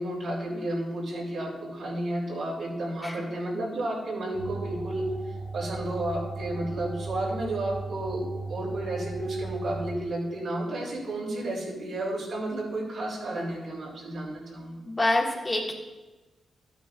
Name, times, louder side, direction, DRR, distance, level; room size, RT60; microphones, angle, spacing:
voice 1, 0.0-5.0 5.5-14.8, right 1 dB, 70° right, -3 dB, 3.2 m, -32 dB
sound 1, 4.3-9.9, right 3 dB, 30° right, 1.7 m, -37 dB
voice 2, 14.9-15.7, left 1 dB, 25° left, -1 dB, 1.6 m, -26 dB
12.5 x 9.3 x 2.5 m, 1.2 s
cardioid pair, 90°, 0 cm